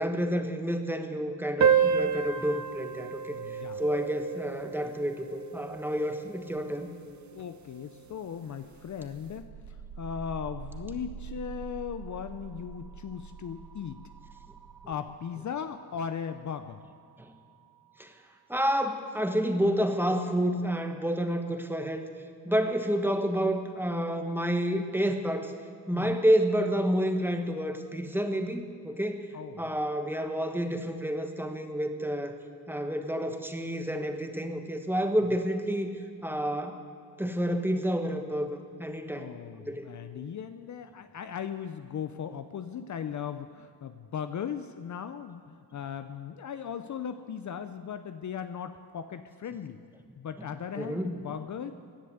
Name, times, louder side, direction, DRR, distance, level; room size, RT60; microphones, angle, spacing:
voice 1, 0.0-6.9 17.2-17.3 18.0-18.1 18.5-22.0 22.4-25.5 25.9-29.3 29.6-32.4 32.7-35.9 36.2-36.8 37.2-39.3 39.6-39.9 50.8-51.1, equal, 5° right, 6 dB, 1.3 m, -29 dB
sound 1, 1.6-6.6, right 7 dB, 45° right, 0.9 m, -29 dB
voice 2, 3.3-3.8 7.3-14.0 14.9-16.8 25.9-26.1 29.3-29.8 39.1-49.8 50.2-51.7, left 8 dB, 45° left, 10 dB, 0.7 m, -38 dB
sound 2, 8.7-18.3, right 6 dB, 75° right, 1.2 m, -46 dB
17.5 x 10.5 x 8.0 m, 2.3 s
cardioid pair, 110°, 41 cm